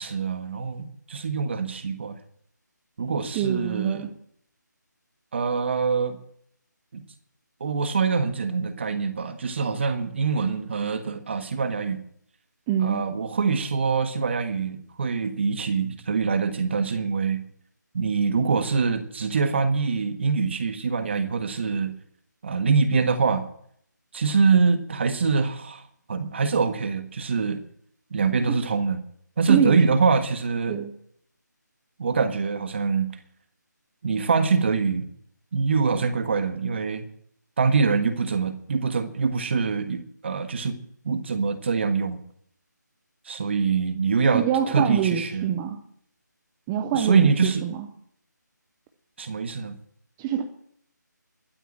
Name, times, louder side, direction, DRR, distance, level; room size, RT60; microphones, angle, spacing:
voice 1, 0.0-2.2 3.0-4.1 5.3-6.2 6.9-7.0 7.6-12.0 12.8-17.4 17.9-21.9 22.4-23.5 24.1-25.8 26.1-27.6 28.1-29.0 29.4-30.8 32.0-33.2 34.0-35.1 35.5-37.0 37.6-40.8 41.0-42.2 43.2-45.5 46.9-47.6 49.2-49.7, right 5 dB, 35° right, 9 dB, 1.5 m, -24 dB
voice 2, 3.3-4.1 12.7-13.0 29.5-29.8 30.7-30.9 44.3-45.8 46.7-47.8 50.2-50.4, right 9 dB, 10° right, 6 dB, 0.5 m, -25 dB
12.0 x 9.0 x 8.8 m, 0.66 s
figure-of-eight pair, 165°, 10 cm